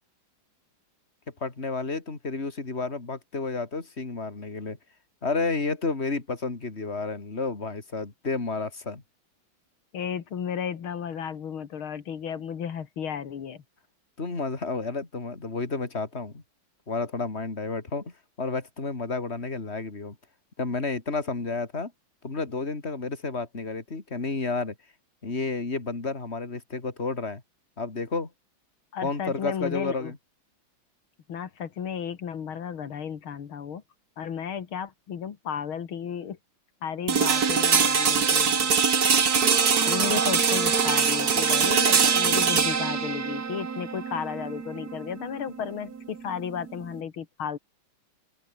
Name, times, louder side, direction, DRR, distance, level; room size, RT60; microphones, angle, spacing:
voice 1, 1.4-4.8 5.2-9.0 14.2-16.4 16.9-20.2 20.6-21.9 22.2-24.7 25.2-27.4 27.8-28.3 29.0-30.2 39.1-39.5, left 3 dB, 30° left, 3.5 m, -31 dB
voice 2, 9.9-13.6 28.9-30.1 31.3-33.8 34.2-36.4 36.8-38.7 39.9-47.6, left 8 dB, 85° left, 2.6 m, -34 dB
sound 1, 37.1-47.0, right 6 dB, 50° right, 2.3 m, -23 dB
open air
omnidirectional pair, 2.2 m